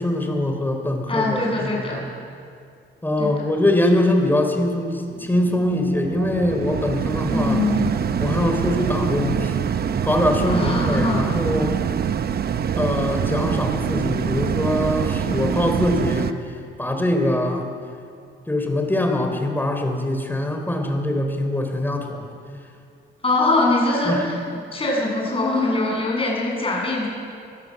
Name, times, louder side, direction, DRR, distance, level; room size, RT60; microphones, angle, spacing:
voice 1, 0.0-2.1 3.0-7.6 8.2-9.6 10.0-11.8 12.8-16.3 16.8-17.7 18.5-22.3 24.0-24.3, left 1 dB, 10° left, 4 dB, 3.7 m, -23 dB
voice 2, 1.1-2.0 3.2-3.3 7.3-8.1 10.5-11.2 23.2-24.1 24.7-27.1, left 2 dB, 25° left, -2 dB, 7.7 m, -22 dB
sound 1, 5.1-16.3, right 8 dB, 50° right, 0.9 m, -25 dB
23.5 x 15.5 x 7.8 m, 2.4 s
cardioid pair, 90°, 20 cm